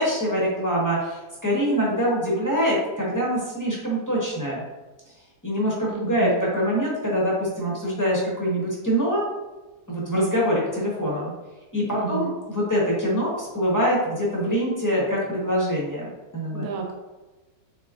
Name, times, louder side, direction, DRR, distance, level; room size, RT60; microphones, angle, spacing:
voice 1, 0.0-4.6 5.4-9.2 9.9-11.3 11.7-16.6, equal, 20° left, -6 dB, 0.6 m, -24 dB
voice 2, 5.9-6.4 11.9-12.3 16.5-16.9, right 6 dB, 75° right, 1 dB, 1.1 m, -31 dB
3.9 x 3.3 x 2.4 m, 1.1 s
omnidirectional pair, 1.6 m